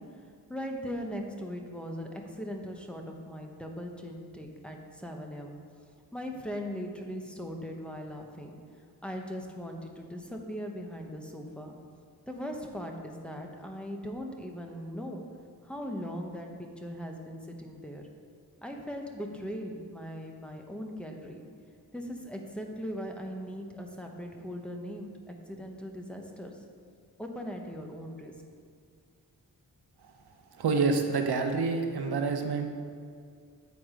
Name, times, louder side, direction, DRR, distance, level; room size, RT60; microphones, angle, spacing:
voice 1, 0.0-5.6 6.1-8.6 9.0-11.8 12.3-15.2 15.6-18.1 18.6-21.4 21.9-26.6 27.2-28.3, equal, 5° left, 2 dB, 0.9 m, -39 dB
voice 2, 30.5-32.7, right 4 dB, 85° right, 5 dB, 0.8 m, -27 dB
8.3 x 4.3 x 5.0 m, 2.2 s
cardioid pair, 70°, 38 cm